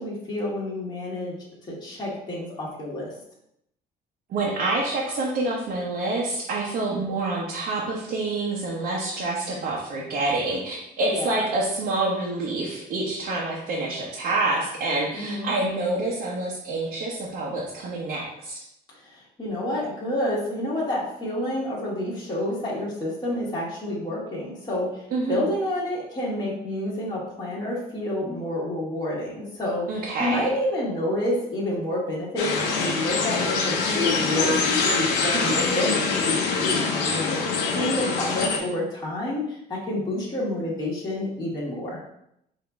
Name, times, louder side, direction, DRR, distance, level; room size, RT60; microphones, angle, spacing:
voice 1, 0.0-1.3 1.7-3.1 11.0-11.4 15.1-15.5 19.1-24.9 25.3-29.9 30.2-34.6 34.9-37.4 37.7-42.0, left 1 dB, 25° left, -7 dB, 1.6 m, -29 dB
voice 2, 4.3-18.6 25.1-25.5 29.9-30.5 35.3-35.6, right 2 dB, 65° right, -4 dB, 1.0 m, -27 dB
sound 1, 32.4-38.6, left 4 dB, 90° left, 0.8 m, -24 dB
5.0 x 2.9 x 3.6 m, 0.78 s
cardioid pair, 110°, 17 cm